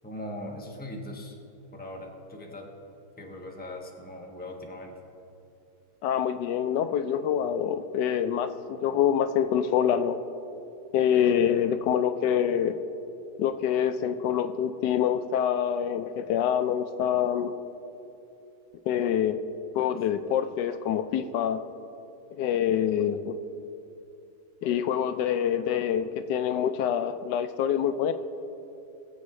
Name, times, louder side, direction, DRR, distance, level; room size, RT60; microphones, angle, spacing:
voice 1, 0.0-1.4 1.7-2.7 3.2-4.9, left 1 dB, 5° left, -1 dB, 1.1 m, -40 dB
voice 2, 6.0-10.2 10.9-12.8 13.4-17.5 18.9-19.4 19.7-21.6 22.4-23.4 24.6-28.1, left 9 dB, 85° left, 10 dB, 1.2 m, -26 dB
21.0 x 8.0 x 3.2 m, 2.8 s
omnidirectional pair, 1.8 m